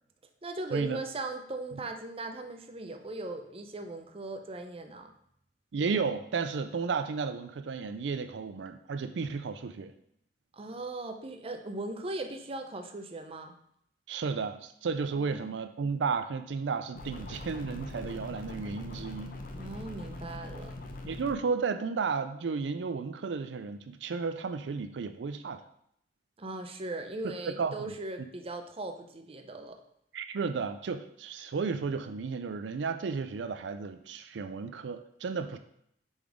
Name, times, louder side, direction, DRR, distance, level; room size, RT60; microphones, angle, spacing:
voice 1, 0.4-5.1 10.5-13.5 15.1-15.6 19.6-20.8 26.4-29.8, right 2 dB, 35° right, 6 dB, 0.6 m, -39 dB
voice 2, 5.7-9.9 14.1-19.4 21.0-25.6 27.6-27.9 30.1-35.6, right 5 dB, 90° right, 10 dB, 0.4 m, -33 dB
sound 1, 16.9-21.3, left 2 dB, 50° left, 0.8 m, -42 dB
6.9 x 4.0 x 4.9 m, 0.72 s
head